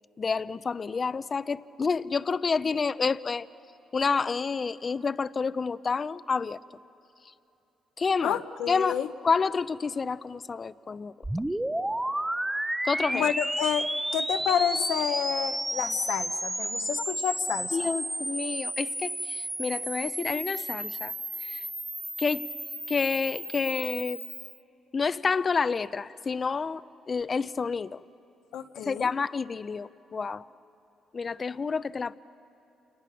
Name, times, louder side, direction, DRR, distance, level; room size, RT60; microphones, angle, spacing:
voice 1, 0.2-3.5 3.9-6.6 8.0-8.4 8.7-11.1 12.8-13.3 17.7-21.1 21.4-21.6 22.2-22.5 22.9-24.2 24.9-28.0 28.8-30.5 31.1-32.1, left 5 dB, 35° left, 16 dB, 0.5 m, -29 dB
voice 2, 8.2-9.1 13.1-17.8 28.5-29.1, left 9 dB, 85° left, 7 dB, 0.9 m, -29 dB
sound 1, 11.2-24.6, right 1 dB, 10° right, 0.7 m, -32 dB
29.0 x 28.5 x 6.1 m, 2.8 s
cardioid pair, 90°, 0 cm